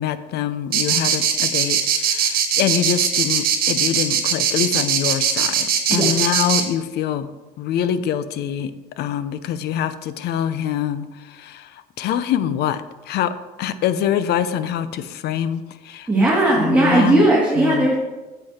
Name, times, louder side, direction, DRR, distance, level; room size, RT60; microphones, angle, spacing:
voice 1, 0.0-7.3 7.6-13.3 13.6-16.1 16.6-17.3 17.6-17.9, left 9 dB, 75° left, 13 dB, 0.6 m, -25 dB
sound 1, 0.7-6.6, right 8 dB, 60° right, 1.4 m, -20 dB
voice 2, 16.1-17.9, right 2 dB, 10° right, -5 dB, 1.9 m, -17 dB
7.9 x 7.8 x 4.3 m, 1.2 s
cardioid pair, 110°, 17 cm